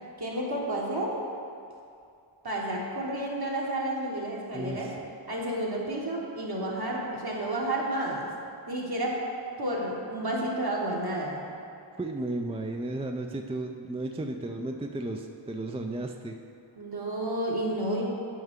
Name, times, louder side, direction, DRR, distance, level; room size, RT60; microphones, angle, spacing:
voice 1, 0.2-1.2 2.4-4.9 5.3-8.3 8.7-9.2 9.6-11.4 16.7-18.0, right 1 dB, 50° right, -4 dB, 1.5 m, -31 dB
voice 2, 4.5-5.0 12.0-16.3, right 2 dB, 15° right, 3 dB, 0.3 m, -34 dB
9.3 x 5.5 x 3.6 m, 2.5 s
wide cardioid pair, 55°, 47 cm